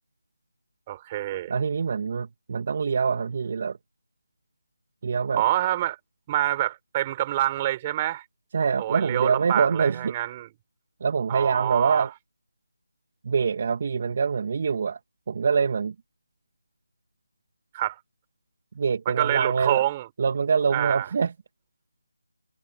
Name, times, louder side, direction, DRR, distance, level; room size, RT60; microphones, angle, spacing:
voice 1, 0.9-1.5 5.3-6.0 6.3-8.3 8.8-10.5 11.3-12.1 17.7-18.0 19.1-20.0 20.7-21.0, right 14 dB, 20° right, 5.2 m, -26 dB
voice 2, 1.5-3.8 5.0-5.4 8.5-10.1 11.0-12.1 13.2-15.0 15.3-16.0 18.7-19.8 20.2-21.3, right 5 dB, 40° right, 1.9 m, -25 dB
figure-of-eight pair, 165°, 0 cm